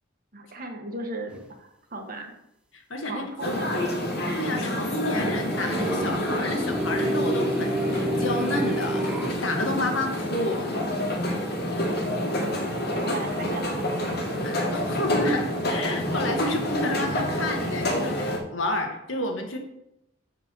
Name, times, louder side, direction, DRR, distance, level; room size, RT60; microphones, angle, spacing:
voice 1, 0.3-2.4 3.0-3.8 11.9-12.5 13.0-14.2, right 1 dB, 50° right, 3 dB, 1.4 m, -37 dB
sound 1, 1.3-1.4 5.1-9.3, right 1 dB, 5° right, 0.9 m, -29 dB
voice 2, 2.7-3.6 4.3-10.7 14.4-19.6, left 1 dB, 85° left, 3 dB, 1.5 m, -30 dB
sound 2, 3.4-18.4, equal, 55° left, 1.8 m, -28 dB
6.9 x 4.7 x 6.8 m, 0.84 s
head